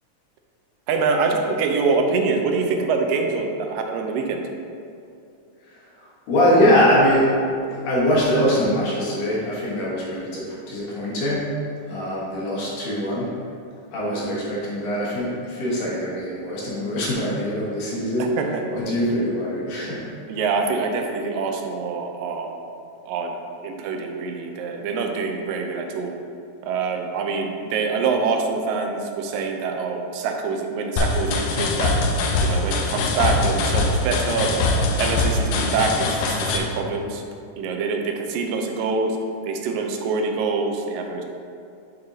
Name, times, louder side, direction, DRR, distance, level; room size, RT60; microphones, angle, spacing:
voice 1, 0.9-4.4 18.2-18.6 20.3-22.6 23.1-23.3 23.6-26.1 26.6-32.0 32.4-34.7 35.0-37.2 37.6-39.2 39.4-41.2, right 4 dB, 85° right, 3 dB, 2.3 m, -25 dB
voice 2, 5.6-7.4 7.7-11.5 11.8-13.3 13.9-18.3 18.7-20.0, equal, 70° left, -6 dB, 2.8 m, -22 dB
sound 1, 31.0-36.6, left 3 dB, 85° left, 2.3 m, -22 dB
7.1 x 6.6 x 2.7 m, 2.4 s
omnidirectional pair, 3.9 m